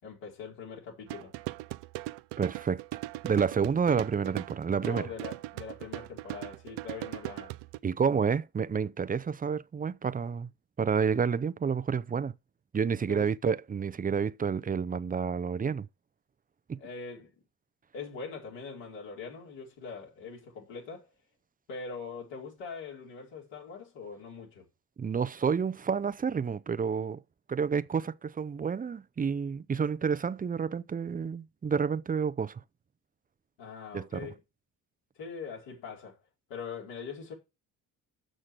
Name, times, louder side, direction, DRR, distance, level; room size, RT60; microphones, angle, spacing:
voice 1, 0.0-1.3 4.8-7.5 13.1-13.3 16.8-17.3 17.9-21.1 21.7-24.7 33.6-34.3 35.2-36.2 36.5-37.3, left 5 dB, 75° left, 4.6 m, -42 dB
sound 1, 1.1-7.8, right 18 dB, 70° right, 0.6 m, -39 dB
voice 2, 2.4-2.8 3.2-5.1 7.8-10.5 10.8-12.3 12.7-15.9 16.7-16.8 25.0-27.2 27.5-32.6 33.9-34.3, right 6 dB, 20° right, 0.6 m, -29 dB
7.6 x 6.4 x 6.6 m
hypercardioid pair, 60°, 44 cm